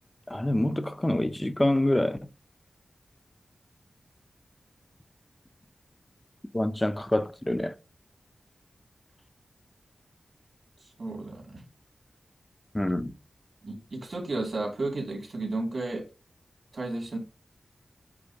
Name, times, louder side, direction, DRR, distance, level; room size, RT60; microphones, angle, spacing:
voice 1, 0.3-2.2 6.5-7.7 12.7-13.1, left 1 dB, 15° left, 0.6 m, -26 dB
voice 2, 11.0-11.6 13.6-16.0 16.7-17.2, right 2 dB, 55° right, 2.8 m, -33 dB
8.7 x 4.4 x 2.9 m
wide cardioid pair, 125°, 0 cm